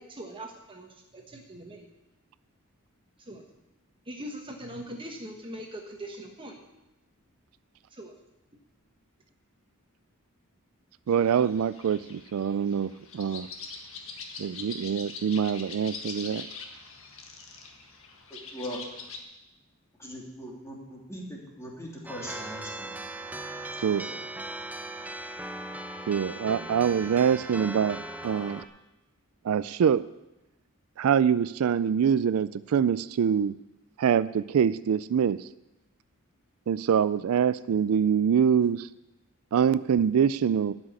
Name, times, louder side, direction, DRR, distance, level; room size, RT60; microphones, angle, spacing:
voice 1, 0.0-1.9 3.2-3.4 4.0-6.6 7.9-8.1, right 1 dB, 25° right, 2 dB, 1.3 m, -41 dB
sound 1, 11.1-19.2, left 4 dB, 65° left, 1.7 m, -43 dB
voice 2, 11.1-13.5 14.4-16.5 23.8-24.1 26.1-28.6 29.4-30.0 31.0-33.6 34.0-35.5 36.7-38.9 39.5-40.7, right 7 dB, 80° right, 16 dB, 0.4 m, -25 dB
voice 3, 18.3-18.8 20.0-22.9 24.1-24.2, equal, 15° left, -3 dB, 3.0 m, -40 dB
sound 2, 22.1-28.7, right 1 dB, 5° right, 0.7 m, -38 dB
13.0 x 6.2 x 9.6 m, 0.97 s
head